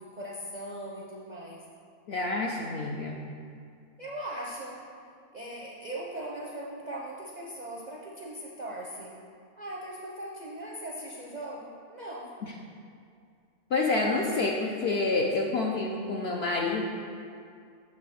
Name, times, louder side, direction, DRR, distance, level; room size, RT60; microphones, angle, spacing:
voice 1, 0.0-1.7 4.0-4.9 5.3-9.2 9.6-12.3, right 1 dB, 45° right, -4 dB, 0.6 m, -39 dB
voice 2, 2.1-3.2 12.4-12.5 13.7-16.9, left 3 dB, 65° left, -1 dB, 0.6 m, -28 dB
7.7 x 3.3 x 6.2 m, 2.3 s
omnidirectional pair, 1.6 m